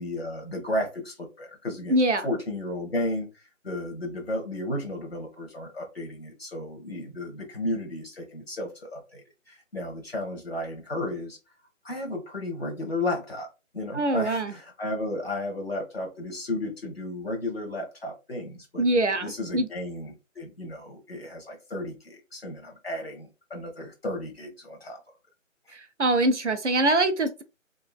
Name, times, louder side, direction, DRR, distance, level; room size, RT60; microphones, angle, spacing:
voice 1, 0.0-1.9 2.2-3.3 3.6-11.4 11.8-13.5 13.7-18.9 19.2-25.0, left 1 dB, 50° left, 1.1 m, -33 dB
voice 2, 1.9-2.3 13.9-14.5 18.8-19.7 25.7-27.4, right 1 dB, 60° right, 0.5 m, -24 dB
2.8 x 2.4 x 2.3 m
figure-of-eight pair, 155°, 40 cm